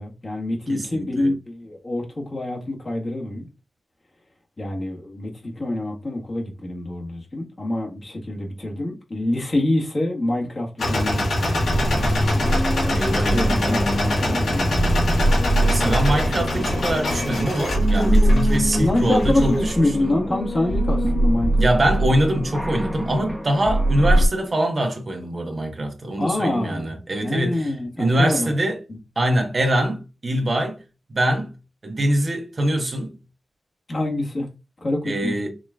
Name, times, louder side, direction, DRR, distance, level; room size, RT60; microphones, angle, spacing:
voice 1, 0.0-3.5 4.6-12.1 13.1-15.3 18.7-21.7 26.2-26.9 27.2-28.5 28.9-29.0 33.9-34.5 34.8-35.4, left 1 dB, 45° left, 1.6 m, -26 dB
voice 2, 0.7-1.3 13.0-13.8 15.6-19.7 20.0-20.1 21.6-27.7 28.0-28.8 29.2-30.8 31.1-31.5 31.8-33.1 35.0-35.5, right 1 dB, 50° right, 1.2 m, -23 dB
sound 1, 10.8-19.8, left 1 dB, 75° left, 1.6 m, -24 dB
sound 2, 11.6-24.3, right 1 dB, 5° right, 1.2 m, -22 dB
5.0 x 3.0 x 2.4 m
cardioid pair, 40°, 0 cm